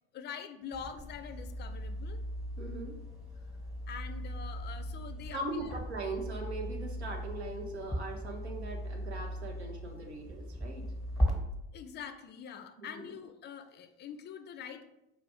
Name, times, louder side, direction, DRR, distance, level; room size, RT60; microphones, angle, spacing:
voice 1, 0.1-2.2 3.9-5.7 11.7-14.9, left 7 dB, 35° left, 9 dB, 0.4 m, -44 dB
sound 1, 0.7-11.3, equal, ahead, 1.1 m, -38 dB
voice 2, 2.6-3.0 5.3-10.8 12.8-13.1, right 2 dB, 85° right, 2 dB, 0.8 m, -40 dB
4.8 x 2.5 x 3.4 m, 0.89 s
hypercardioid pair, 65°, 32 cm